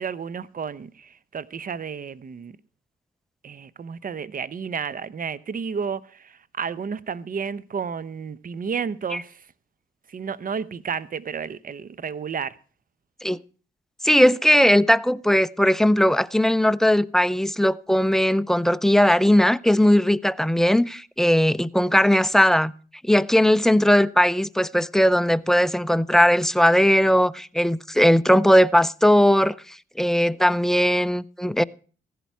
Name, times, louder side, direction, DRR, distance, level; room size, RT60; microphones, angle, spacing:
voice 1, 0.0-2.6 3.4-9.5 10.1-12.6, right 6 dB, 45° right, 0.8 m, -32 dB
voice 2, 14.0-22.7 23.1-29.6 30.0-31.6, equal, ahead, 0.5 m, -18 dB
15.5 x 11.0 x 4.6 m
cardioid pair, 65°, 21 cm